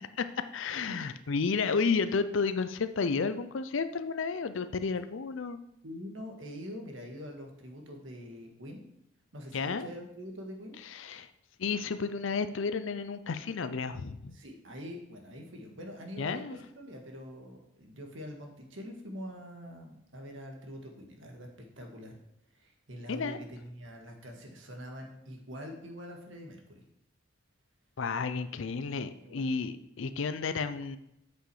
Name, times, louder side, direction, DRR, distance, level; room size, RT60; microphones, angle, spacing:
voice 1, 0.0-5.6 9.5-9.9 10.8-11.3 11.6-14.4 16.2-16.6 23.1-23.4 28.0-31.0, left 5 dB, 65° left, 11 dB, 0.5 m, -32 dB
voice 2, 5.8-8.8 9.3-10.8 14.3-21.5 21.8-22.2 22.5-26.8 29.2-29.5, equal, 65° right, 2 dB, 1.7 m, -44 dB
8.3 x 6.2 x 4.8 m, 0.81 s
head